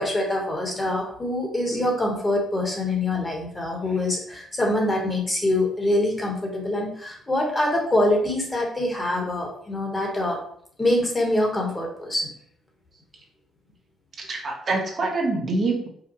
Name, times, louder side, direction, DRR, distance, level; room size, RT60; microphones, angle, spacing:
voice 1, 0.0-10.4 10.8-12.3, left 1 dB, 20° left, 0 dB, 1.3 m, -24 dB
voice 2, 14.2-15.9, right 3 dB, 50° right, 0 dB, 0.9 m, -25 dB
5.0 x 2.3 x 2.9 m, 0.64 s
cardioid pair, 90°, 0 cm